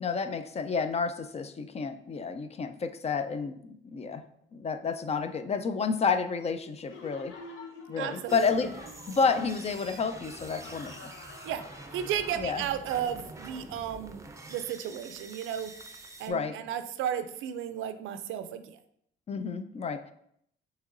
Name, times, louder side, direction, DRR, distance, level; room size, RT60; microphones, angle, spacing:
voice 1, 0.0-4.3 4.5-7.4 7.9-8.7 9.1-11.0 12.4-12.6 16.3-16.6 19.3-20.1, left 5 dB, 35° left, 10 dB, 0.4 m, -30 dB
Laughter, 6.9-13.2, left 3 dB, 85° left, 0.7 m, -48 dB
voice 2, 8.0-8.7 11.4-11.6 11.9-14.2 14.5-15.7 16.2-18.8, right 9 dB, 85° right, 10 dB, 0.4 m, -34 dB
sound 1, 8.3-16.3, right 2 dB, 15° right, 0.5 m, -46 dB
6.4 x 3.0 x 2.5 m, 0.70 s
cardioid pair, 90°, 20 cm